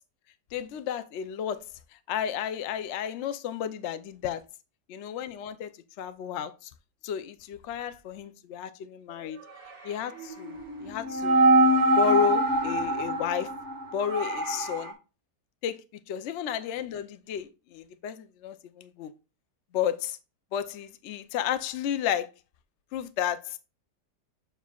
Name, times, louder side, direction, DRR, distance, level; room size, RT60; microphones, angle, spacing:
voice 1, 0.5-1.6 1.9-4.4 4.9-5.7 6.0-6.7 7.0-9.4 9.8-11.4 12.0-13.5 13.9-14.9 15.6-15.8 16.1-19.1 19.7-20.2 20.5-22.3 22.9-23.6, left 9 dB, 65° left, 0.7 m, -32 dB
sound 1, 10.2-14.9, right 1 dB, 45° right, 1.4 m, -24 dB
7.1 x 5.7 x 2.3 m
omnidirectional pair, 1.8 m